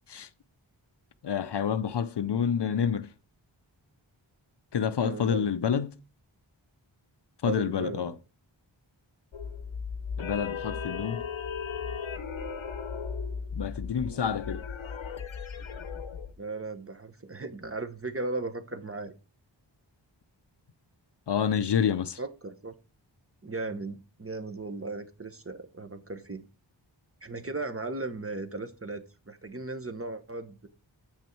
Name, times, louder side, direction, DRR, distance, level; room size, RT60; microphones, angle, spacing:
voice 1, 1.2-3.1 4.7-6.0 7.4-8.1 10.2-11.2 13.5-14.6 21.3-22.2, left 7 dB, 60° left, 0.6 m, -28 dB
voice 2, 5.0-5.5 7.4-8.2 16.4-19.1 22.2-22.7 23.4-26.5 27.2-30.7, right 3 dB, 30° right, 1.1 m, -36 dB
sound 1, 9.3-16.3, left 6 dB, 85° left, 0.9 m, -36 dB
8.1 x 6.2 x 4.5 m
wide cardioid pair, 50°, 46 cm